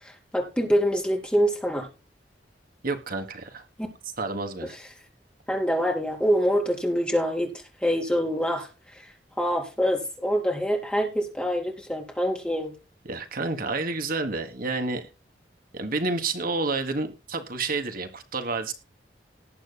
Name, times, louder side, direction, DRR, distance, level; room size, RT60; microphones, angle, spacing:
voice 1, 0.0-1.9 5.5-7.5 7.8-12.7, equal, 5° left, 4.0 m, -25 dB
voice 2, 2.8-3.6 4.2-4.7 13.0-15.1 15.7-18.7, right 3 dB, 55° right, 1.4 m, -29 dB
19.0 x 8.2 x 2.2 m
head